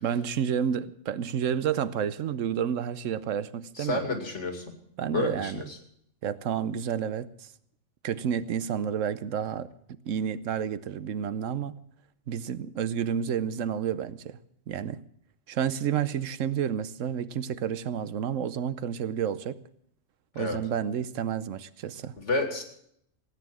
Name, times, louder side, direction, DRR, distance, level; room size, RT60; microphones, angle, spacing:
voice 1, 0.0-4.0 5.0-5.6 6.2-7.5 8.0-11.8 12.3-14.4 14.7-15.0 15.5-19.6 20.3-22.1, right 8 dB, 90° right, 15 dB, 1.1 m, -30 dB
voice 2, 3.7-4.6 5.1-5.8 20.4-20.6 22.2-22.6, left 3 dB, 70° left, 5 dB, 2.8 m, -30 dB
16.5 x 9.3 x 7.6 m, 0.70 s
omnidirectional pair, 1.3 m